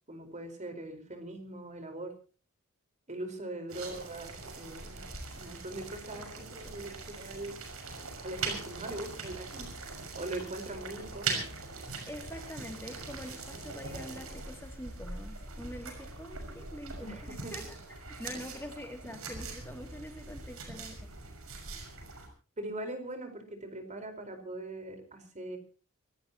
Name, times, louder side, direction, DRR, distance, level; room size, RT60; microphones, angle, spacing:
voice 1, 0.1-2.1 3.1-5.0 5.4-7.6 8.2-9.7 10.1-11.5 17.0-17.5 22.6-25.6, right 1 dB, 35° right, 6 dB, 4.6 m, -41 dB
sound 1, 3.7-22.3, right 4 dB, 85° right, 6.0 m, -41 dB
voice 2, 6.1-6.8 12.1-21.1, left 1 dB, 10° left, 3 dB, 2.6 m, -45 dB
25.5 x 17.5 x 3.0 m, 0.36 s
head